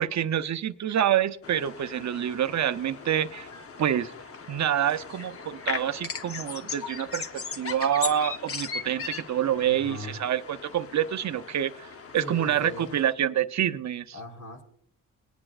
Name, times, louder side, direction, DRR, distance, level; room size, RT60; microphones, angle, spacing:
voice 1, 0.0-3.5 3.8-4.1 4.5-7.3 7.6-14.1, right 10 dB, 50° right, 0.7 m, -27 dB
sound 1, 1.4-13.1, left 5 dB, 40° left, 0.8 m, -38 dB
voice 2, 9.6-10.2 12.2-13.0 14.1-14.6, left 3 dB, 60° left, 3.5 m, -39 dB
20.5 x 9.9 x 2.4 m
cardioid pair, 115°, 35 cm